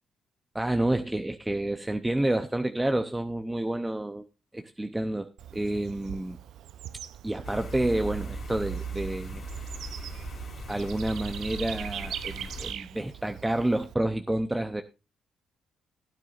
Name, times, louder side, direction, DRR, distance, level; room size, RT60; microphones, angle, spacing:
voice 1, 0.5-4.3 4.5-6.4 7.2-9.4 10.7-14.8, right 1 dB, 10° right, 0.7 m, -29 dB
Bird / Insect, 5.4-13.9, right 10 dB, 75° right, 0.6 m, -42 dB
sound 1, 7.4-12.7, right 3 dB, 55° left, 3.6 m, -38 dB
16.5 x 9.1 x 2.5 m
cardioid pair, 90°, 0 cm